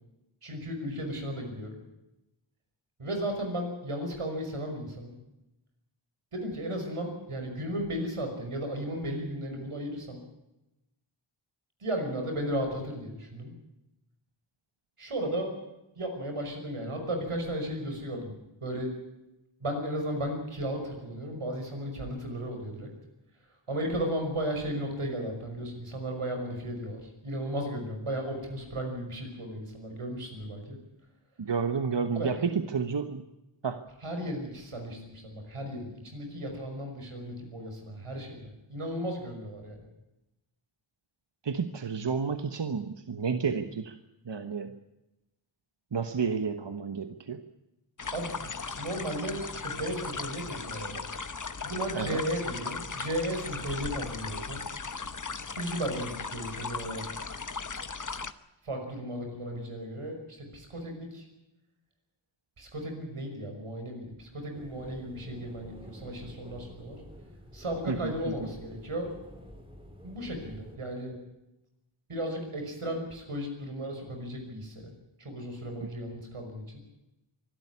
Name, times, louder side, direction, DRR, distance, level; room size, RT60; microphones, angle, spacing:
voice 1, 0.4-1.8 3.0-5.1 6.3-10.2 11.8-13.5 15.0-15.5 16.0-18.4 18.6-18.9 19.6-22.9 23.7-30.8 32.2-32.3 34.0-39.8 48.1-51.1 51.6-54.6 55.4-57.0 58.6-61.3 62.6-67.0 67.5-69.1 70.0-71.2 72.1-74.9 75.2-76.8, equal, 90° right, 4 dB, 5.8 m, -35 dB
voice 2, 31.4-33.2 33.6-33.8 41.4-44.0 44.2-44.8 45.9-47.4 51.9-52.2 67.9-68.3, right 5 dB, 55° right, 8 dB, 1.2 m, -31 dB
sound 1, 48.0-58.3, left 4 dB, 40° left, 1.1 m, -37 dB
sound 2, 64.5-70.8, equal, 10° right, 4.1 m, -49 dB
24.0 x 12.5 x 9.9 m, 0.96 s
wide cardioid pair, 70°, 50 cm